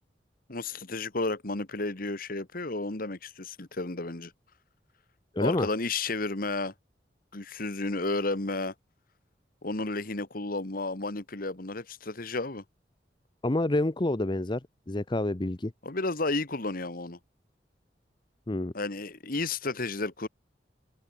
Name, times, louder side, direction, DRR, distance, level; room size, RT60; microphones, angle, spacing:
voice 1, 0.5-4.3 5.4-6.7 7.3-8.7 9.6-12.6 15.8-17.2 18.7-20.3, left 3 dB, 55° left, 1.8 m, -32 dB
voice 2, 5.3-5.7 13.4-14.6 14.9-15.7 18.5-18.7, left 1 dB, 25° left, 0.8 m, -27 dB
open air
head